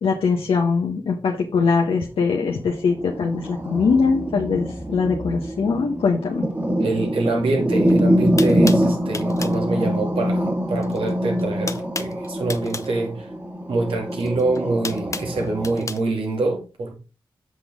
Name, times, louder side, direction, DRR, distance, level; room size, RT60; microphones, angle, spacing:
voice 1, 0.0-6.5, left 5 dB, 80° left, 1.2 m, -22 dB
sound 1, 2.4-15.9, equal, 20° right, 2.0 m, -24 dB
voice 2, 6.8-13.3 13.7-17.0, right 3 dB, 80° right, 2.5 m, -25 dB
sound 2, 7.9-8.0 8.4-9.6 10.8-11.1 11.4-12.9 14.1-16.0, left 3 dB, 35° left, 0.8 m, -32 dB
7.9 x 6.2 x 3.6 m
supercardioid pair, 40°, 9 cm